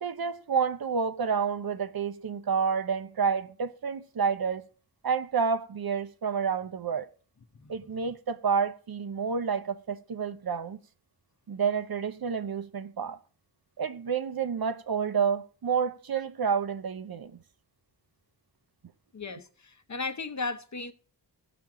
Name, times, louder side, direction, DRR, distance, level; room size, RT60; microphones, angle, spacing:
voice 1, 0.0-4.6 5.0-7.1 7.7-10.8 11.5-13.2 13.8-17.4, right 6 dB, 55° right, 0.6 m, -29 dB
voice 2, 19.1-20.9, left 3 dB, 40° left, 0.8 m, -35 dB
16.5 x 6.0 x 3.7 m
wide cardioid pair, 80°, 43 cm